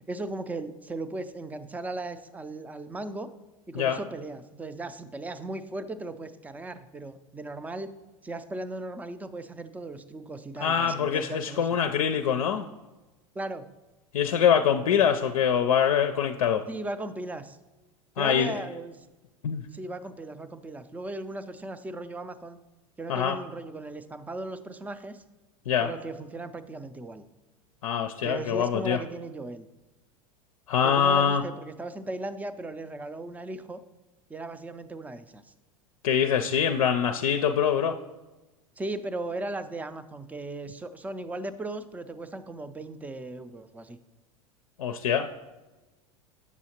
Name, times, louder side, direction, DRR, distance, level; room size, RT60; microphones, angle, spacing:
voice 1, 0.1-3.3 3.7-7.9 8.2-11.7 13.3-13.7 16.7-17.6 18.2-19.1 19.7-22.6 23.0-25.2 25.8-27.2 28.2-29.7 30.8-33.8 34.3-35.5 38.8-44.0, right 2 dB, 10° right, 13 dB, 0.4 m, -37 dB
voice 2, 10.6-12.7 14.1-16.6 18.2-18.5 19.4-19.6 23.1-23.4 25.7-25.9 27.8-29.0 30.7-31.4 36.0-38.0 44.8-45.3, left 8 dB, 75° left, 5 dB, 0.4 m, -24 dB
8.2 x 6.2 x 2.9 m, 1.1 s
hypercardioid pair, 90°, 18 cm